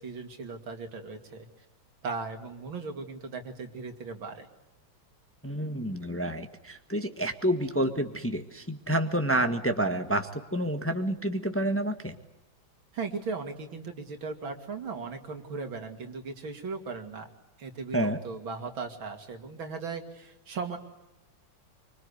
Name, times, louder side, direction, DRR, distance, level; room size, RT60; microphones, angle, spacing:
voice 1, 0.0-1.5 2.0-4.5 12.9-17.3 17.6-20.8, right 4 dB, 90° right, 5 dB, 3.3 m, -37 dB
voice 2, 5.4-12.2 17.9-18.2, right 1 dB, 10° left, 6 dB, 1.2 m, -29 dB
25.5 x 24.5 x 8.2 m, 0.97 s
omnidirectional pair, 2.1 m